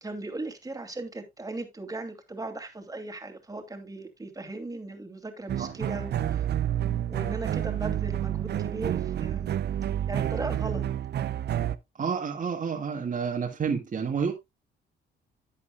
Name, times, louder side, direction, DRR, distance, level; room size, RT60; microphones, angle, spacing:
voice 1, 0.0-6.5 7.1-9.5 10.1-10.8, right 2 dB, 20° right, 2.6 m, -37 dB
sound 1, 5.5-11.8, right 11 dB, 55° right, 0.7 m, -29 dB
voice 2, 12.0-14.3, right 6 dB, 40° right, 1.9 m, -29 dB
11.5 x 8.3 x 2.3 m
cardioid pair, 90°, 20 cm